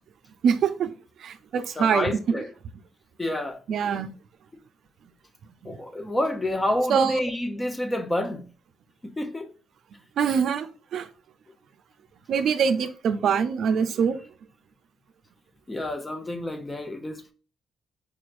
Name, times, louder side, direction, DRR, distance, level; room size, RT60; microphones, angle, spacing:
voice 1, 0.4-0.9 1.2-2.2 3.7-4.1 5.6-5.8 6.9-7.2 10.2-11.1 12.3-14.2, right 6 dB, 70° right, 0.4 m, -24 dB
voice 2, 1.8-2.5 3.2-3.6 5.6-8.4 9.0-9.5 15.7-17.3, left 1 dB, 20° left, 0.7 m, -28 dB
4.7 x 3.1 x 2.5 m
cardioid pair, 90°, 0 cm